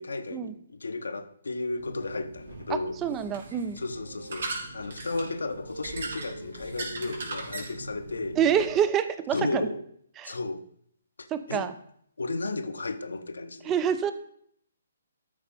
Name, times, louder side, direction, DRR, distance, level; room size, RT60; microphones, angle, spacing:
voice 1, 0.0-3.0 3.8-8.4 9.3-9.8 10.2-10.6 11.2-11.7 12.2-13.7, left 3 dB, 70° left, 1.0 m, -34 dB
sound 1, 1.8-8.7, right 2 dB, 60° right, 3.5 m, -39 dB
voice 2, 2.7-3.8 8.4-9.6 10.2-10.3 11.3-11.7 13.7-14.1, right 8 dB, 20° right, 0.7 m, -27 dB
13.0 x 5.0 x 5.3 m
figure-of-eight pair, 135°, 0 cm